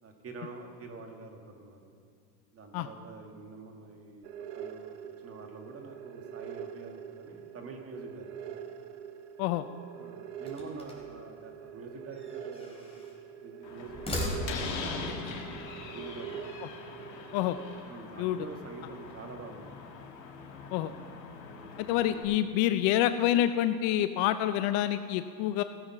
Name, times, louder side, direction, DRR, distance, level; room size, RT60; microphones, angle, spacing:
voice 1, 0.0-1.9 2.5-4.3 4.5-8.3 9.9-13.0 13.4-16.3 17.9-19.8 21.5-21.8, right 3 dB, 30° right, 3 dB, 2.1 m, -46 dB
sound 1, 4.2-17.8, right 8 dB, 70° right, 1.2 m, -44 dB
sound 2, 10.4-11.2 12.1-13.2 13.8-14.9, left 1 dB, 10° left, 3.7 m, -37 dB
Slam, 13.6-22.2, left 4 dB, 80° left, 2.3 m, -42 dB
voice 2, 21.8-25.6, left 12 dB, 50° left, 11 dB, 0.6 m, -27 dB
17.5 x 7.4 x 5.9 m, 2.3 s
hypercardioid pair, 100°, 49 cm